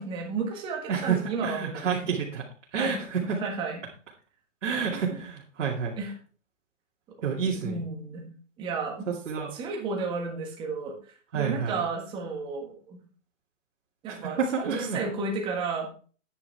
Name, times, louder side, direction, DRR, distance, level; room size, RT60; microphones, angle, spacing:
voice 1, 0.0-2.0 2.8-3.9 4.7-5.2 6.0-6.1 7.1-7.2 7.6-8.3 8.6-9.1 9.5-11.0 11.3-13.0 14.0-15.9, right 4 dB, 15° right, 1 dB, 1.6 m, -33 dB
voice 2, 0.9-2.4 2.7-3.4 4.6-6.0 7.2-7.8 9.1-9.5 11.3-11.8 14.1-15.0, right 6 dB, 65° right, -4 dB, 2.4 m, -29 dB
9.6 x 9.5 x 3.4 m, 0.40 s
hypercardioid pair, 170°, 38 cm